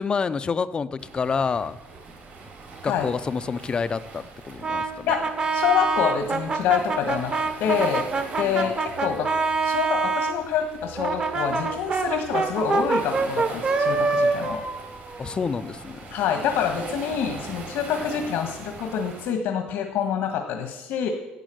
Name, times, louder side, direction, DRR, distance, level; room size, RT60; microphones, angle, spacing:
voice 1, 0.0-1.8 2.8-5.1 8.4-8.7 15.2-16.2, left 5 dB, 25° left, 13 dB, 0.5 m, -28 dB
Waves surf, 1.0-19.3, right 3 dB, 60° right, 4.5 m, -41 dB
Brass instrument, 4.6-10.4 11.0-15.7, right 3 dB, 30° right, 1.1 m, -25 dB
voice 2, 5.1-7.3 7.6-8.1 8.4-9.3 9.6-14.6 16.1-21.1, left 8 dB, 90° left, 5 dB, 1.5 m, -26 dB
11.5 x 8.3 x 7.7 m, 1.0 s
cardioid pair, 145°, 4 cm